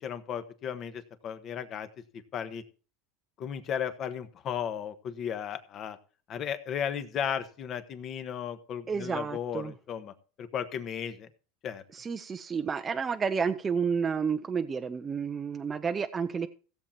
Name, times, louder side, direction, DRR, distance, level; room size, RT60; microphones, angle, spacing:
voice 1, 0.0-1.9 2.3-2.6 3.4-6.0 6.3-10.1 10.4-11.3 11.6-11.8, left 8 dB, 40° left, 10 dB, 1.3 m, -35 dB
voice 2, 8.9-9.7 11.9-16.5, right 6 dB, 20° right, 6 dB, 0.6 m, -30 dB
16.0 x 7.4 x 4.4 m, 0.39 s
supercardioid pair, 130°, 0 cm